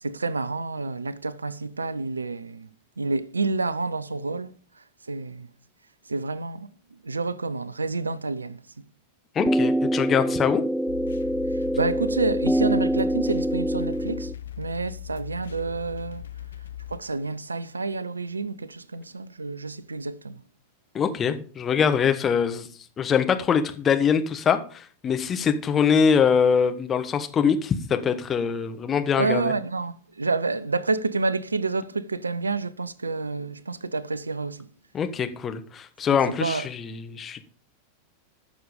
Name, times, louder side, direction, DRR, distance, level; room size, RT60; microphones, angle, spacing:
voice 1, 0.0-2.7 3.0-4.5 5.1-5.5 6.1-6.7 7.0-8.6 11.8-14.3 14.6-16.2 16.9-20.4 29.2-34.7 36.1-36.7, right 3 dB, 80° right, 0.5 m, -29 dB
voice 2, 9.3-10.6 20.9-22.7 23.0-29.5 34.9-37.4, left 7 dB, 25° left, 1.2 m, -23 dB
sound 1, 9.4-14.3, right 1 dB, ahead, 0.4 m, -25 dB
sound 2, 10.9-17.0, left 12 dB, 70° left, 0.7 m, -38 dB
12.5 x 6.3 x 5.1 m
figure-of-eight pair, 90°, 0 cm